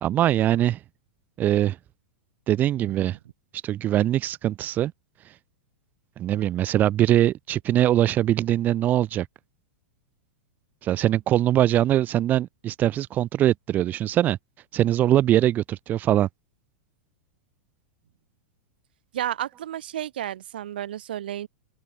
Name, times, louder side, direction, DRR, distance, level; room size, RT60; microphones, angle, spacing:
voice 1, 0.0-0.8 1.4-1.8 2.5-3.2 3.6-4.9 6.2-9.3 10.8-14.4 14.7-16.3, right 12 dB, 30° right, 1.4 m, -22 dB
voice 2, 19.1-21.5, right 11 dB, 65° right, 2.1 m, -31 dB
open air
figure-of-eight pair, 100°, 6 cm